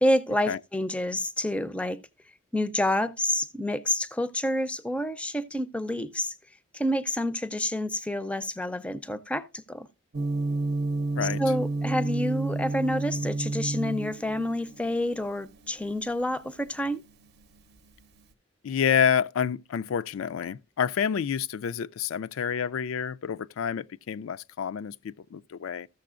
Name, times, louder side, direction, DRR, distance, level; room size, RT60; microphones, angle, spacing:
voice 1, 0.0-2.0 2.5-6.3 6.7-9.9 11.4-17.0, left 1 dB, 5° left, 0.4 m, -28 dB
Gong, 10.1-18.2, right 2 dB, 50° right, 0.7 m, -31 dB
voice 2, 18.6-25.9, left 8 dB, 85° left, 0.4 m, -28 dB
14.5 x 6.8 x 2.4 m
head